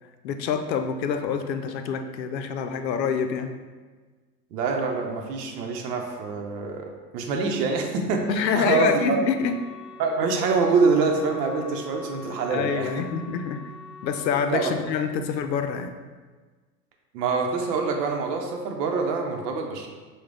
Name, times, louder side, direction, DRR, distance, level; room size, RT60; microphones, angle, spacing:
voice 1, 0.2-3.5 8.3-9.6 12.5-13.6 14.0-15.9, left 6 dB, 80° left, 7 dB, 0.6 m, -26 dB
voice 2, 4.5-9.2 10.0-13.1 14.5-14.7 17.1-19.9, right 4 dB, 70° right, 2 dB, 0.8 m, -25 dB
Wind instrument woodwind instrument, 8.6-14.4, left 4 dB, ahead, 1.1 m, -44 dB
5.8 x 2.3 x 3.3 m, 1.4 s
hypercardioid pair, 95°, 50 cm